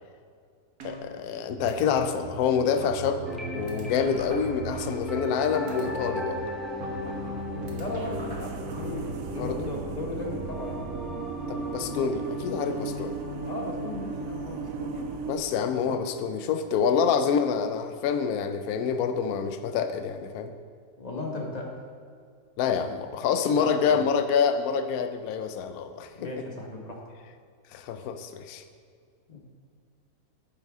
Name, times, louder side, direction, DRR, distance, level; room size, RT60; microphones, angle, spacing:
voice 1, 0.8-6.4 9.4-9.7 11.5-13.2 15.3-20.5 22.6-26.3 27.7-28.6, left 6 dB, 80° left, 8 dB, 1.0 m, -27 dB
sound 1, 0.8-1.4 1.7-1.9 2.4-2.5 2.8-5.4 5.7-5.9 6.8-8.8, right 1 dB, 85° right, 1.8 m, -41 dB
sound 2, 1.5-15.4, right 7 dB, 70° right, 0.9 m, -38 dB
sound 3, 3.2-17.2, left 2 dB, ahead, 0.9 m, -38 dB
voice 2, 7.8-10.8 13.4-15.1 15.8-16.0 21.0-21.7 23.5-24.0 26.1-27.0 29.3-29.4, left 2 dB, 30° left, 0 dB, 1.1 m, -36 dB
9.7 x 6.9 x 3.5 m, 2.1 s
omnidirectional pair, 1.6 m